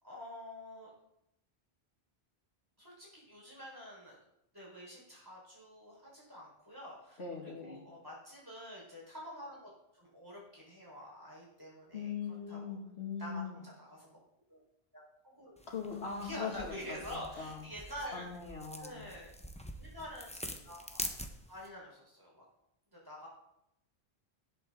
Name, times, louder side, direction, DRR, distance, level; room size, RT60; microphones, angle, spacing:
voice 1, 0.0-0.9 2.8-4.1 4.5-12.1 12.5-12.8 13.2-14.2 14.5-14.6 14.9-15.5 16.2-18.3 18.8-19.3 19.8-21.1 21.5-22.4 23.0-23.3, equal, 20° right, -4 dB, 4.5 m, -47 dB
voice 2, 7.2-7.8 11.9-13.6 15.7-17.0 17.4-17.6 18.1-19.0, left 6 dB, 85° left, 0 dB, 2.5 m, -40 dB
sound 1, 15.6-21.7, equal, 5° left, 0.9 m, -46 dB
18.0 x 8.1 x 3.8 m, 0.81 s
omnidirectional pair, 1.1 m